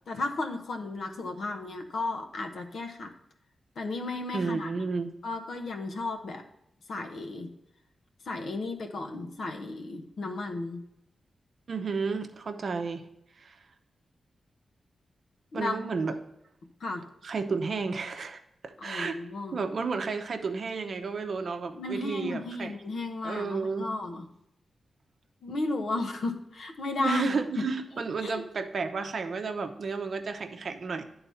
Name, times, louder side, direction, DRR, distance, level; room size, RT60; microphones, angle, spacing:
voice 1, 0.1-3.1 3.8-4.7 4.9-6.4 6.9-7.5 8.3-10.8 15.5-15.7 16.8-17.0 18.8-19.6 21.7-24.3 25.4-27.7 28.2-28.4, left 2 dB, 75° left, 4 dB, 1.0 m, -34 dB
voice 2, 4.3-5.1 11.7-13.0 13.4-13.6 15.5-16.1 17.2-19.2 19.5-22.7 23.2-23.9 27.0-31.0, right 4 dB, 55° right, 7 dB, 0.7 m, -32 dB
10.5 x 3.9 x 5.6 m, 0.80 s
wide cardioid pair, 155°, 0 cm